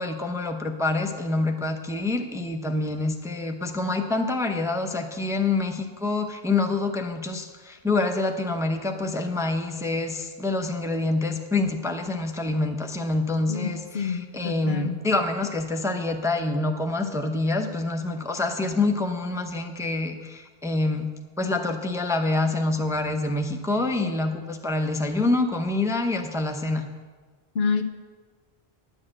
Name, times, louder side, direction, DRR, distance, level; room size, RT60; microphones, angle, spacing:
voice 1, 0.0-21.1 21.4-26.9, left 2 dB, 5° right, 5 dB, 0.6 m, -26 dB
voice 2, 13.5-15.0 27.5-27.8, left 5 dB, 75° left, 7 dB, 1.0 m, -28 dB
10.5 x 6.3 x 8.9 m, 1.4 s
omnidirectional pair, 1.1 m